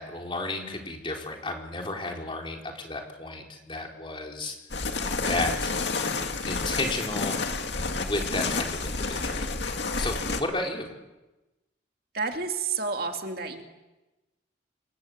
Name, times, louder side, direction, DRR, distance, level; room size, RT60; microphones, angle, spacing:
voice 1, 0.0-4.6 5.1-5.7 6.5-7.6 8.0-9.6 10.0-10.9, left 2 dB, 25° left, 1 dB, 4.2 m, -33 dB
sound 1, 4.7-10.4, left 3 dB, 65° left, 2.2 m, -30 dB
voice 2, 12.1-13.6, right 4 dB, 50° right, 4 dB, 2.4 m, -30 dB
28.0 x 23.0 x 8.0 m, 1.1 s
head